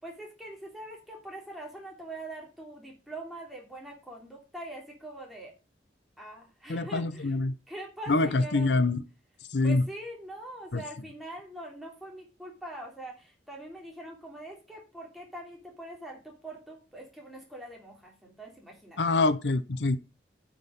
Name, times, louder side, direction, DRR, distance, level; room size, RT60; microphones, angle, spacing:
voice 1, 0.0-5.5 6.2-7.3 7.7-8.7 9.6-19.2, right 1 dB, ahead, 3.2 m, -43 dB
voice 2, 6.7-7.5 8.1-9.0 9.5-9.8 10.7-10.8 19.0-20.0, left 2 dB, 80° left, 0.8 m, -25 dB
9.7 x 6.3 x 5.2 m
head